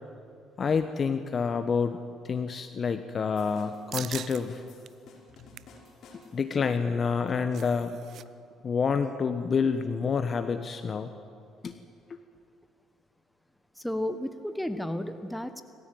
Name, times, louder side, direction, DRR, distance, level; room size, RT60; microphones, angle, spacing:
voice 1, 0.6-2.0 2.2-4.6 6.3-8.0 8.6-11.1 11.6-11.7, left 5 dB, 45° left, 9 dB, 1.1 m, -28 dB
sound 1, 3.4-6.6, left 3 dB, 65° left, 5.1 m, -54 dB
sound 2, 3.9-4.4 4.8-4.9 5.3-5.8 7.1-8.2 8.5-8.6 9.0-9.2, right 10 dB, 65° right, 0.7 m, -41 dB
voice 2, 13.8-15.6, left 1 dB, 5° left, 9 dB, 1.3 m, -32 dB
26.0 x 14.5 x 9.2 m, 2.5 s
supercardioid pair, 80°, 0 cm